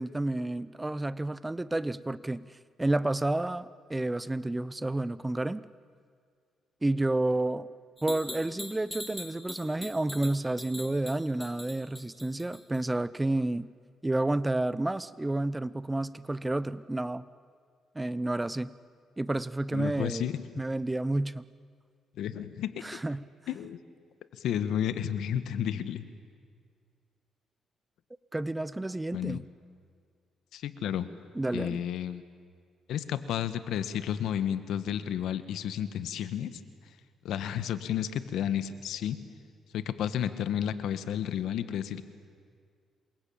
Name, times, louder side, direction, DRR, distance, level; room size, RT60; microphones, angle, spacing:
voice 1, 0.0-2.4 2.8-5.6 6.8-7.7 8.0-13.7 14.0-17.2 17.9-18.7 19.2-20.3 20.6-21.5 22.8-23.2 28.3-29.4 31.3-31.9, right 2 dB, 15° right, 17 dB, 0.7 m, -30 dB
sound 1, 8.0-12.8, left 1 dB, 5° left, 3.6 m, -42 dB
voice 2, 19.7-20.4 22.2-23.0 23.5-23.8 24.3-26.1 29.1-29.4 30.5-31.1 31.5-32.2 32.9-36.6 37.2-39.2 39.7-42.0, left 10 dB, 80° left, 11 dB, 1.5 m, -32 dB
28.0 x 23.0 x 8.7 m, 2.1 s
cardioid pair, 90°, 0 cm